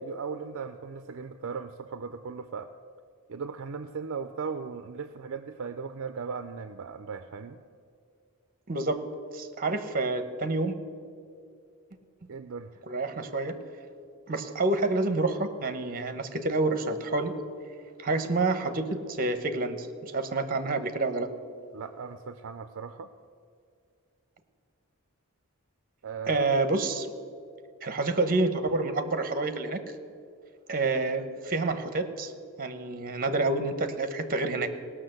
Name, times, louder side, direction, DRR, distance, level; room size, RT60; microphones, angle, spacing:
voice 1, 0.0-2.7 3.3-7.6 12.3-12.7 21.7-23.1 26.0-26.5, right 5 dB, 60° right, 10 dB, 0.5 m, -37 dB
voice 2, 8.7-9.0 9.3-10.8 12.9-13.6 14.3-17.3 18.0-21.3 26.3-27.1 27.8-29.8 30.7-32.3 32.6-34.7, right 2 dB, 40° right, 10 dB, 0.9 m, -28 dB
17.5 x 6.2 x 7.8 m, 2.3 s
head